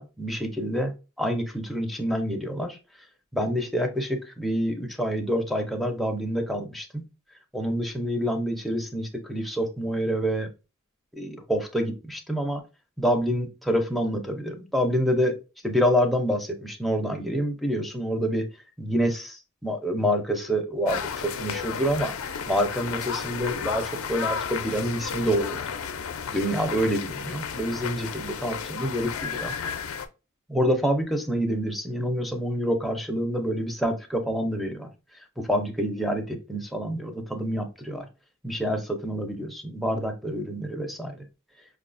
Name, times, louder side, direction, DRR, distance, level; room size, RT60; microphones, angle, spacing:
voice 1, 0.0-2.8 3.3-7.0 7.5-10.5 11.2-12.6 13.0-15.3 15.6-18.4 18.8-22.1 22.5-25.6 26.3-29.5 30.5-34.9 35.4-38.1 38.4-41.1, equal, ahead, 3 dB, 0.5 m, -27 dB
sound 1, 20.9-30.1, left 6 dB, 75° left, 0.4 m, -33 dB
5.3 x 2.3 x 2.5 m, 0.30 s
head